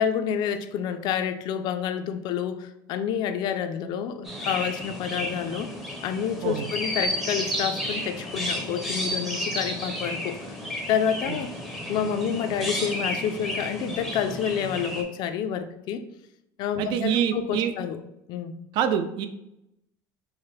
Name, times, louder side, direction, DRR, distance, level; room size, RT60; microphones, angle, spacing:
voice 1, 0.0-5.7 6.0-10.5 10.9-11.5 11.9-16.0 16.6-18.0 18.3-18.5, left 8 dB, 50° left, 9 dB, 0.4 m, -28 dB
Chirp tweet, 4.2-15.0, equal, ahead, 0.6 m, -32 dB
voice 2, 16.8-17.7 18.7-19.3, right 9 dB, 55° right, 10 dB, 0.4 m, -25 dB
4.6 x 2.1 x 3.1 m, 0.85 s
cardioid pair, 145°, 10 cm